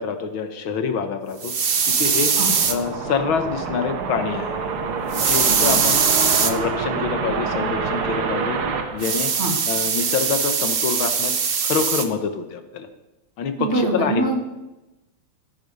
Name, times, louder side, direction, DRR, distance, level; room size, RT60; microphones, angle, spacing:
voice 1, 0.0-1.5 2.0-2.3 2.7-4.6 5.2-6.0 6.4-8.6 8.9-9.3 9.7-11.3 11.6-12.9 13.4-14.2, left 6 dB, 70° left, 8 dB, 1.8 m, -26 dB
sound 1, 1.4-2.8 5.1-6.5 9.0-12.1, right 6 dB, 60° right, 0.5 m, -21 dB
sound 2, 1.6-10.0, right 5 dB, 80° right, 2.2 m, -27 dB
voice 2, 13.6-14.4, right 2 dB, 30° right, 1 dB, 2.2 m, -24 dB
14.5 x 9.9 x 5.4 m, 0.99 s
omnidirectional pair, 2.4 m